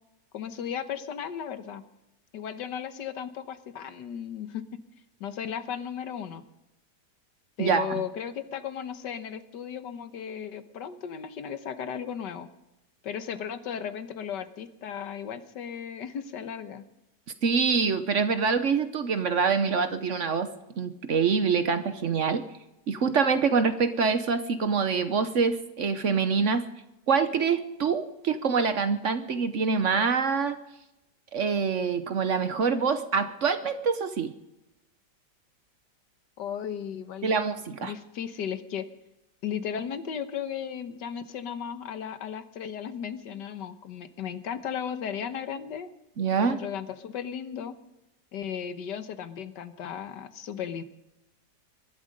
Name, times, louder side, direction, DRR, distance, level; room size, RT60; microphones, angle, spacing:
voice 1, 0.3-1.8 2.3-4.6 5.2-6.4 7.6-12.5 13.0-16.8 36.4-37.4 37.8-38.9 39.4-45.9 46.5-47.8 48.3-50.8, left 8 dB, 80° left, 10 dB, 1.7 m, -35 dB
voice 2, 7.6-8.0 17.4-20.5 20.8-22.4 22.9-26.6 27.1-30.6 31.3-34.3 37.2-37.9 46.2-46.6, right 5 dB, 50° right, 10 dB, 1.0 m, -25 dB
22.0 x 12.5 x 5.2 m, 0.93 s
omnidirectional pair, 1.9 m